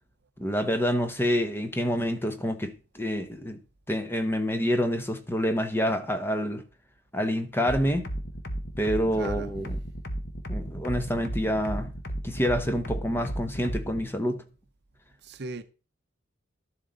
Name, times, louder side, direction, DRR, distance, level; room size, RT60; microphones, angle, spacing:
voice 1, 0.4-3.6 3.9-6.6 7.1-8.1 8.8-9.8 10.5-11.9 12.2-14.4, equal, 10° left, 0.8 m, -27 dB
sound 1, 7.6-14.0, right 1 dB, 50° left, 1.3 m, -34 dB
voice 2, 9.1-9.5 15.2-15.6, right 3 dB, 50° right, 0.8 m, -38 dB
12.0 x 7.6 x 3.9 m
head